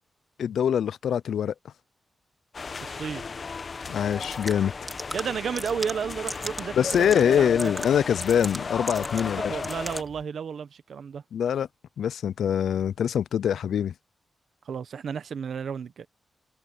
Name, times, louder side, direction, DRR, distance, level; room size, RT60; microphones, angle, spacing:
voice 1, 0.4-1.5 3.9-4.7 6.8-9.6 11.3-11.7 12.0-13.9, left 8 dB, 90° left, 0.3 m, -24 dB
sound 1, 2.5-10.0, left 4 dB, 40° left, 1.1 m, -35 dB
voice 2, 2.8-3.2 5.1-7.9 9.3-11.2 14.6-16.1, right 7 dB, 70° right, 1.1 m, -33 dB
sound 2, 4.1-10.2, right 1 dB, 10° right, 3.2 m, -39 dB
wide cardioid pair, 120°, 0 cm